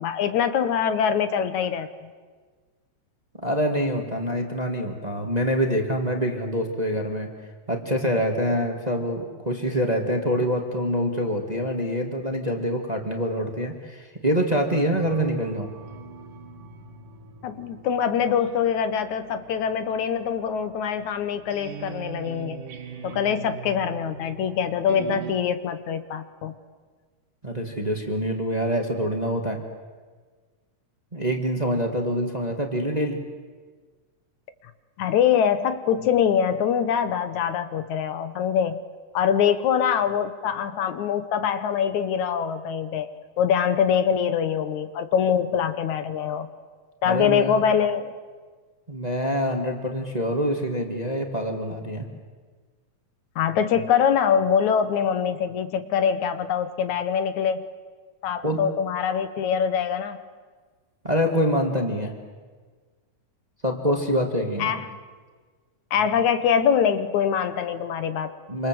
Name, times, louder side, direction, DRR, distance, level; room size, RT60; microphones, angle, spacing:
voice 1, 0.0-2.1 17.4-22.6 23.0-26.5 35.0-38.8 39.1-43.1 43.4-46.5 47.0-48.1 53.4-57.6 58.2-60.2 64.6-64.9 65.9-68.3, left 8 dB, 70° left, 11 dB, 2.4 m, -24 dB
voice 2, 3.4-7.3 7.7-15.7 27.4-29.6 31.1-33.2 47.0-47.6 48.9-52.1 58.4-58.6 61.0-62.1 63.6-64.7 68.5-68.7, equal, 15° right, 3 dB, 2.0 m, -25 dB
sound 1, 15.0-25.3, right 6 dB, 90° right, 3.3 m, -41 dB
27.5 x 27.0 x 7.8 m, 1.5 s
omnidirectional pair, 3.6 m